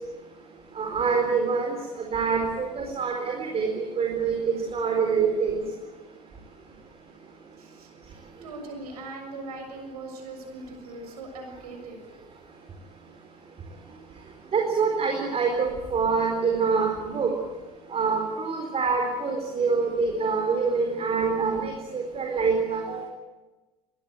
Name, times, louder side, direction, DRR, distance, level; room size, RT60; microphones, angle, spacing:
voice 1, 0.8-5.6 14.5-17.3 17.9-23.1, right 5 dB, 30° right, 1 dB, 4.4 m, -25 dB
voice 2, 7.6-7.9 8.4-12.0, right 2 dB, 70° right, 4 dB, 7.0 m, -40 dB
24.0 x 18.5 x 9.2 m, 1.2 s
figure-of-eight pair, 70°, 21 cm